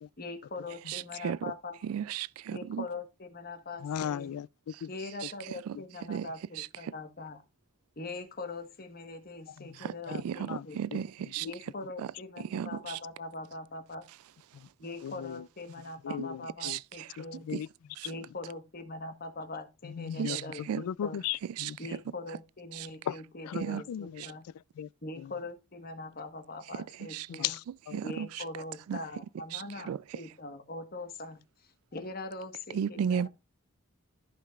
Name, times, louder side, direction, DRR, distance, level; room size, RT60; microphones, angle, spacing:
voice 1, 0.2-1.8 2.5-4.3 4.9-7.4 8.0-10.9 11.4-14.1 14.8-17.5 18.0-21.2 21.8-24.5 25.0-27.6 28.0-31.4 31.9-33.3, left 2 dB, 45° left, 1.3 m, -42 dB
voice 2, 0.9-1.4 1.9-2.8 6.1-6.3 6.6-6.7 9.8-9.9 10.2-11.5 12.5-12.7 16.6-16.8 17.5-17.6 18.0-18.1 20.2-20.4 20.7-20.8 21.6-21.7 22.8-22.9 23.6-23.8 27.1-27.3 27.9-28.3 28.9-29.0 29.5-29.6 29.9-30.0 32.7-33.3, right 8 dB, 85° right, 0.3 m, -33 dB
voice 3, 3.8-4.9 10.1-10.2 10.5-11.1 11.4-11.5 15.0-15.4 16.0-16.8 17.2-17.7 19.9-21.8 23.1-23.2 23.4-24.3 24.8-24.9 25.2-25.3 27.3-28.0, left 9 dB, 90° left, 0.3 m, -37 dB
14.5 x 5.6 x 2.4 m
head